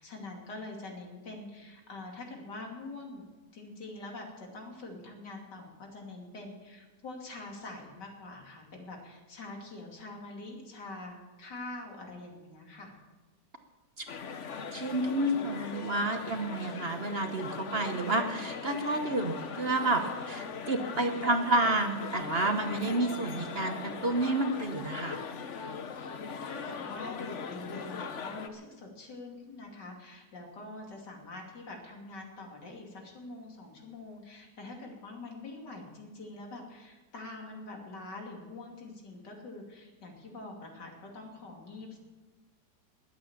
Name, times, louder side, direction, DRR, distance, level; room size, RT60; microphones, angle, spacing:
voice 1, 0.0-3.2 3.5-12.9 18.2-18.5 26.4-42.0, left 2 dB, 85° left, 1 dB, 3.3 m, -45 dB
sound 1, 14.1-28.5, left 5 dB, 50° left, 1.1 m, -40 dB
voice 2, 14.7-25.2, right 2 dB, 40° right, 6 dB, 1.1 m, -30 dB
21.0 x 8.6 x 7.2 m, 1.2 s
omnidirectional pair, 1.8 m